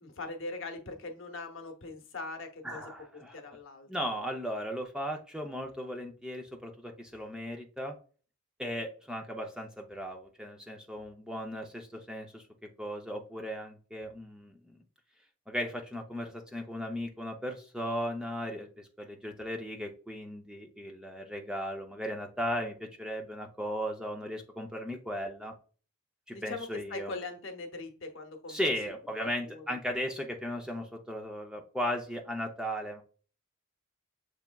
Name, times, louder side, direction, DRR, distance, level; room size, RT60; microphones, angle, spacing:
voice 1, 0.0-2.8 3.1-3.9 26.3-28.7 29.2-29.8, left 3 dB, 60° left, 5 dB, 0.9 m, -41 dB
voice 2, 2.6-3.4 3.9-7.9 8.6-12.4 12.8-14.8 15.5-25.5 26.3-27.1 28.5-33.0, equal, 5° right, 2 dB, 0.5 m, -36 dB
7.0 x 3.3 x 2.2 m, 0.39 s
head